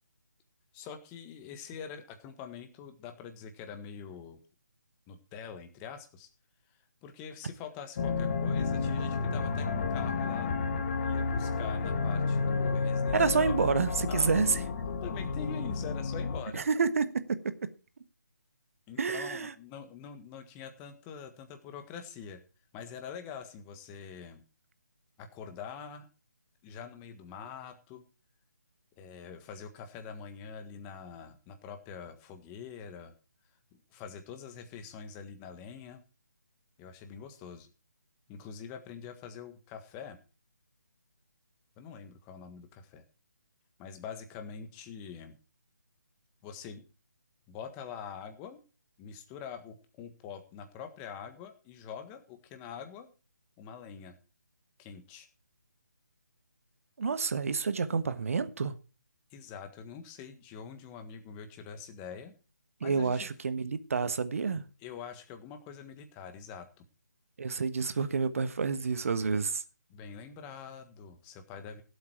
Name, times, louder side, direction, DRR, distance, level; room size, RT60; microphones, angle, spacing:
voice 1, 0.7-4.4 5.1-6.3 7.0-10.6 11.0-13.6 13.9-14.4 15.0-16.6 18.9-22.4 22.7-24.4 25.2-26.1 26.6-28.0 29.0-33.1 33.7-36.0 36.8-37.7 38.3-40.2 41.8-43.0 43.8-45.4 46.4-46.8 47.5-48.6 49.0-53.1 53.6-54.1 54.8-55.3 59.3-62.3 62.8-63.3 64.8-66.7 69.3-69.4 69.9-71.8, left 7 dB, 15° left, 1.5 m, -45 dB
sound 1, 8.0-16.4, left 4 dB, 40° left, 1.5 m, -31 dB
voice 2, 13.1-14.6 16.5-17.4 19.0-19.5 57.0-58.7 62.8-64.6 67.4-69.6, right 5 dB, 50° right, 1.3 m, -29 dB
17.0 x 8.1 x 4.5 m
figure-of-eight pair, 150°, 9 cm